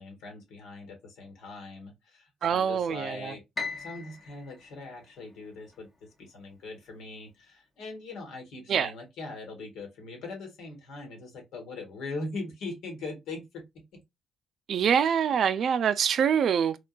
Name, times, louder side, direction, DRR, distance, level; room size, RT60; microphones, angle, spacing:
voice 1, 0.0-3.4 3.7-5.9 6.2-13.9, left 3 dB, 85° left, 1.5 m, -41 dB
voice 2, 2.4-3.3 8.7-8.9 14.7-16.8, right 8 dB, 65° right, 0.3 m, -25 dB
Piano, 3.6-5.8, left 4 dB, 35° left, 0.9 m, -39 dB
3.6 x 2.2 x 2.3 m
cardioid pair, 90°, 0 cm